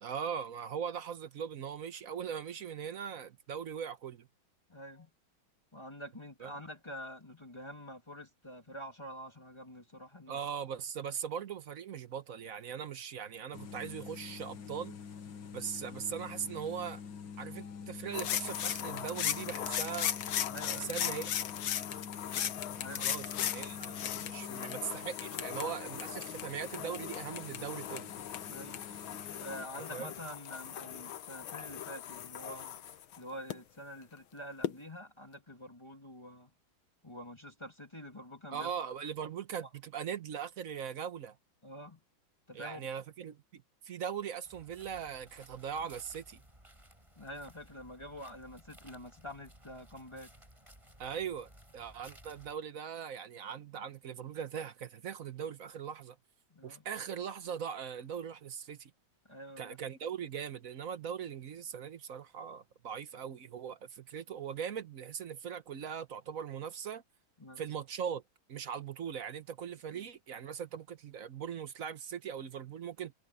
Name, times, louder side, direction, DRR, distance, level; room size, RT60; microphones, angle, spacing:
voice 1, 0.0-4.3 6.4-6.5 10.3-15.0 15.5-17.0 17.4-20.1 20.6-21.4 23.0-28.1 29.9-30.1 38.5-41.4 42.5-46.4 51.0-56.2 56.6-58.9 59.6-67.0 67.6-68.2 68.5-73.1, right 7 dB, 50° right, 1.2 m, -40 dB
voice 2, 4.7-5.1 5.7-10.4 20.5-20.9 22.8-23.1 28.5-28.9 29.3-32.8 33.2-36.5 37.0-38.7 41.6-42.0 42.5-42.9 47.2-50.3 56.5-56.8 59.3-59.8 67.4-67.6 69.9-70.1, equal, 15° left, 2.3 m, -47 dB
sound 1, 13.5-29.7, left 6 dB, 65° left, 2.1 m, -46 dB
sound 2, 18.1-33.5 34.6-34.7, left 10 dB, 80° left, 1.9 m, -38 dB
sound 3, 44.4-52.5, right 1 dB, 15° right, 6.7 m, -58 dB
omnidirectional pair, 2.2 m